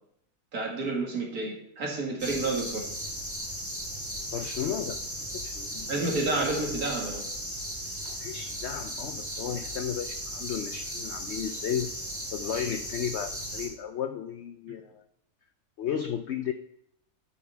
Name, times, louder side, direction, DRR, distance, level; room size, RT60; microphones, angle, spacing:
voice 1, 0.5-2.9 5.9-7.2, right 2 dB, 70° right, -1 dB, 2.3 m, -30 dB
sound 1, 2.2-13.7, equal, 10° right, 2.7 m, -36 dB
voice 2, 4.3-5.0 5.3-5.9 8.2-11.9 12.3-15.0 15.8-16.5, left 9 dB, 75° left, 9 dB, 0.6 m, -34 dB
10.0 x 5.7 x 4.4 m, 0.75 s
omnidirectional pair, 1.6 m